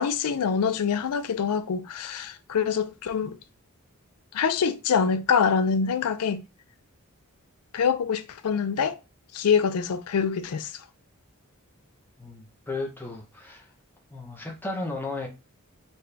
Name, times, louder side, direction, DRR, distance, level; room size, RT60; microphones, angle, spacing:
voice 1, 0.0-3.4 4.3-6.4 7.7-9.0 9.3-10.7, left 6 dB, 85° left, 0.4 m, -25 dB
voice 2, 12.2-13.7 14.1-15.3, left 2 dB, 10° left, 0.7 m, -34 dB
4.1 x 2.3 x 3.2 m
head